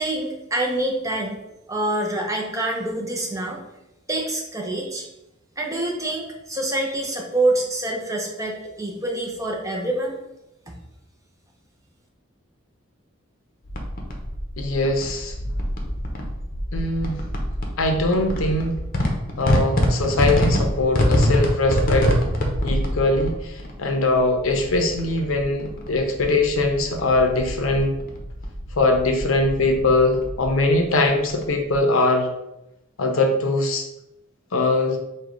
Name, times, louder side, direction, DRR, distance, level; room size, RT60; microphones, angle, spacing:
voice 1, 0.0-1.4 1.7-3.6 4.1-5.1 5.6-10.2 10.7-10.8, right 1 dB, 15° right, 0 dB, 0.6 m, -26 dB
sound 1, 13.6-31.8, equal, 45° left, 0.7 m, -26 dB
voice 2, 14.6-15.3 16.7-17.2 17.8-18.8 19.4-22.1 22.6-23.5 23.8-28.0 28.8-32.3 33.0-33.8 34.5-35.0, left 2 dB, 80° left, 4 dB, 0.6 m, -21 dB
4.8 x 2.3 x 3.8 m, 0.90 s
head